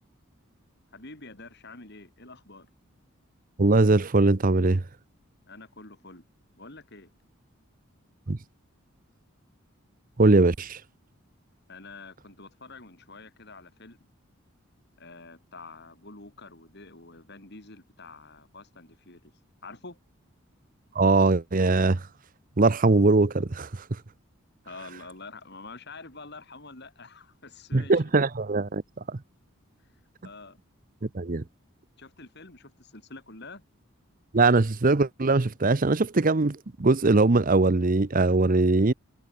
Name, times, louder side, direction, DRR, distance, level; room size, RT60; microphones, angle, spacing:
voice 1, 0.9-2.7 5.5-6.3 6.6-7.1 11.7-14.0 15.0-19.3 19.6-20.0 24.7-28.0 29.8-29.9 30.2-30.6 32.0-33.6, left 3 dB, 50° left, 5.6 m, -46 dB
voice 2, 3.6-4.8 8.3-8.4 10.2-10.8 21.0-22.0 22.6-23.8 27.7-28.8 31.1-31.4 34.3-38.9, right 3 dB, 40° right, 0.8 m, -21 dB
head